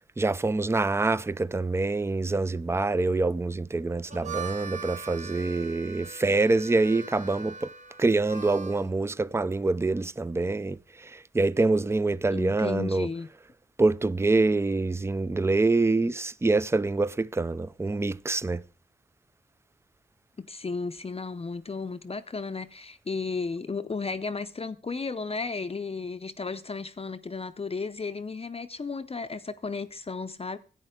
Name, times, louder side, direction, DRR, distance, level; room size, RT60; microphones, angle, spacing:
voice 1, 0.2-7.7 8.0-13.1 13.8-18.6, right 3 dB, 15° right, 0.4 m, -25 dB
Harmonica, 3.9-8.9, right 5 dB, 40° right, 0.9 m, -41 dB
voice 2, 12.3-13.3 20.4-30.6, left 4 dB, 30° left, 0.6 m, -34 dB
11.0 x 8.7 x 3.7 m
cardioid pair, 70°, 19 cm